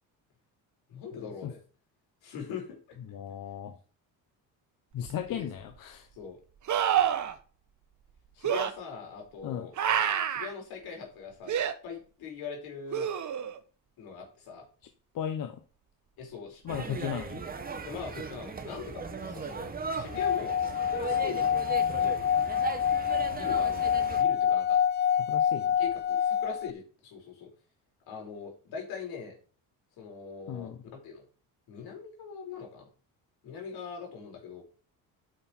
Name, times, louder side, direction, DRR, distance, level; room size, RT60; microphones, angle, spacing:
voice 1, 0.9-1.6 2.2-3.0 5.3-5.5 6.1-6.4 8.3-9.7 10.3-13.1 14.0-14.6 16.2-16.6 17.8-21.5 22.0-22.3 23.3-23.8 24.1-24.8 25.8-27.5 28.1-29.3 30.0-31.2 31.7-32.9 33.4-34.6, left 6 dB, 80° left, 1 dB, 4.8 m, -41 dB
voice 2, 3.1-3.7 4.9-6.1 9.4-9.7 15.1-15.6 16.6-17.4 25.3-25.7 30.5-30.8, left 9 dB, 60° left, 7 dB, 1.1 m, -35 dB
sound 1, 5.1-5.2 6.7-7.3 8.4-8.7 9.8-10.5 11.5-11.7 12.9-13.6 16.7-16.8, right 9 dB, 50° right, 1.3 m, -27 dB
sound 2, 16.7-24.2, right 5 dB, 25° right, 1.4 m, -38 dB
Singing / Glass, 20.1-26.7, left 8 dB, 30° left, 0.4 m, -27 dB
9.3 x 6.6 x 4.5 m, 0.38 s
cardioid pair, 110°, 38 cm